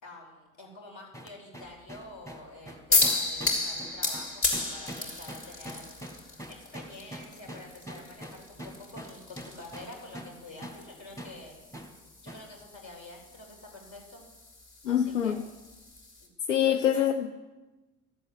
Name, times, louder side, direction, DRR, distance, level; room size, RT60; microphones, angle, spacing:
voice 1, 0.0-6.0 6.5-11.5 12.2-14.2 14.9-15.5 16.2-16.3 16.7-17.1, left 2 dB, 50° left, 1 dB, 4.0 m, -48 dB
sound 1, 1.1-10.4 10.6-10.8 11.2-11.4 11.7-11.9 12.3-12.5, right 1 dB, 10° left, 2.0 m, -43 dB
sound 2, 2.9-16.3, left 2 dB, 35° left, 3.2 m, -34 dB
voice 2, 14.8-15.4 16.5-17.3, left 9 dB, 85° left, 9 dB, 0.5 m, -25 dB
13.5 x 7.9 x 7.9 m, 1.1 s
figure-of-eight pair, 55°, 37 cm